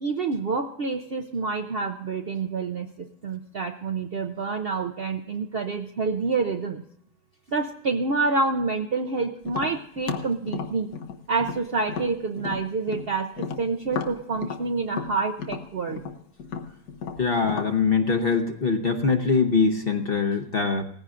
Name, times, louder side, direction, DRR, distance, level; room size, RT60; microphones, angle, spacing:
voice 1, 0.0-6.8 7.5-10.9 11.3-16.0, right 4 dB, 55° right, 4 dB, 0.6 m, -28 dB
Tap, 9.4-13.1 13.4-17.8, left 6 dB, 75° left, 1.5 m, -34 dB
voice 2, 17.2-20.8, left 4 dB, 45° left, 4 dB, 0.9 m, -23 dB
19.0 x 15.5 x 2.5 m, 0.75 s
omnidirectional pair, 1.7 m